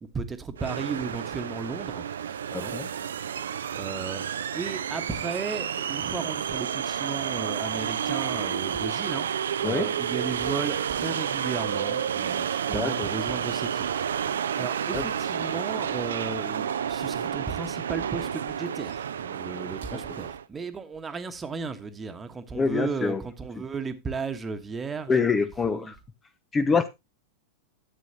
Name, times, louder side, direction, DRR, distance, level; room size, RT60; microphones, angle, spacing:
voice 1, 0.0-2.1 2.5-3.0 3.7-4.3 4.5-13.9 14.6-25.9, right 4 dB, 15° right, 1.2 m, -35 dB
sound 1, 0.6-20.4, right 8 dB, 65° right, 0.5 m, -30 dB
voice 2, 2.5-2.9 9.6-9.9 12.7-13.1 14.9-15.0 19.9-20.0 22.5-23.2 25.1-26.0 26.5-26.9, left 5 dB, 20° left, 0.6 m, -25 dB
12.5 x 8.3 x 2.8 m
figure-of-eight pair, 90°, 0 cm